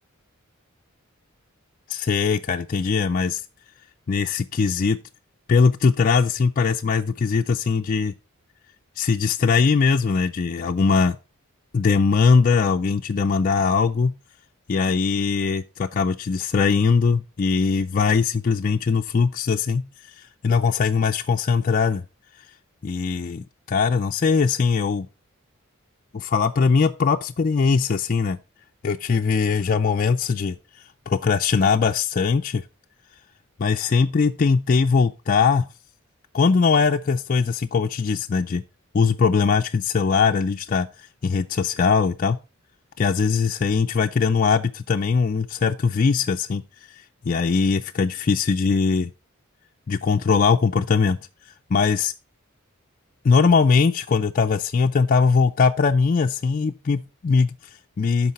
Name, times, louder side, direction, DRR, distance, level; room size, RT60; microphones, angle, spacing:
voice 1, 1.9-3.4 4.1-5.0 5.5-8.1 9.0-11.2 11.7-14.1 14.7-22.0 22.8-25.1 26.1-28.4 28.8-30.6 31.1-32.6 33.6-35.7 36.3-38.6 38.9-42.4 43.0-46.6 46.9-49.1 49.9-51.2 51.7-52.1 53.2-58.3, left 5 dB, 40° left, 0.4 m, -21 dB
12.0 x 4.7 x 4.1 m
head